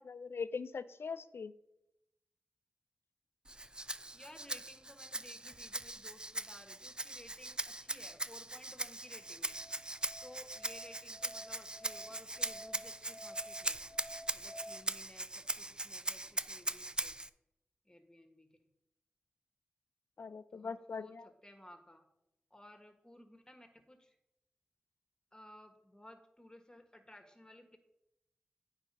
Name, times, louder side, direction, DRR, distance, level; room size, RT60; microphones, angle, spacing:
voice 1, 0.0-1.5 20.2-21.3, left 5 dB, 75° left, 14 dB, 0.4 m, -41 dB
Rattle (instrument), 3.5-17.3, right 2 dB, 20° right, 0.4 m, -41 dB
voice 2, 4.1-9.6 10.2-13.8 14.3-17.2 17.8-18.7 20.5-22.0 22.5-24.1 25.3-27.8, left 1 dB, 20° left, 5 dB, 1.4 m, -57 dB
Musical instrument, 9.1-14.8, equal, 55° left, 0.9 m, -52 dB
9.0 x 4.9 x 5.3 m, 0.86 s
cardioid pair, 40°, 4 cm